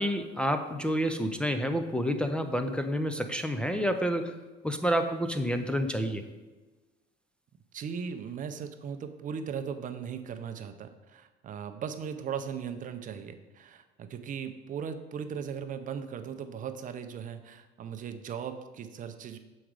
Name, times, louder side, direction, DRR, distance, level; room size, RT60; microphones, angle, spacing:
voice 1, 0.0-4.3 4.6-6.2, equal, 5° left, 5 dB, 0.5 m, -29 dB
voice 2, 7.7-19.4, right 7 dB, 40° right, 8 dB, 0.6 m, -38 dB
6.3 x 4.9 x 4.7 m, 1.2 s
supercardioid pair, 100°, 20 cm